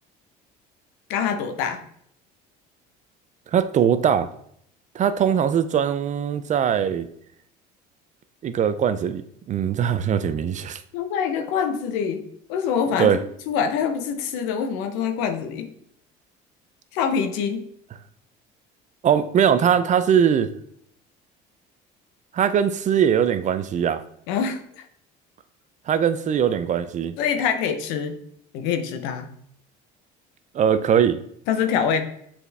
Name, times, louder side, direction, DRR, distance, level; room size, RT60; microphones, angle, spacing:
voice 1, 1.1-1.8 10.9-13.2 13.5-15.7 16.9-17.6 24.3-24.9 27.2-28.2 28.5-29.3 31.5-32.0, left 7 dB, 85° left, 9 dB, 0.8 m, -25 dB
voice 2, 3.5-4.3 4.9-7.1 8.4-10.8 13.0-13.2 19.0-20.5 22.3-24.0 25.9-27.1 30.5-31.2, right 8 dB, 40° right, 12 dB, 0.5 m, -21 dB
7.0 x 4.3 x 3.4 m, 0.68 s
supercardioid pair, 100°, 19 cm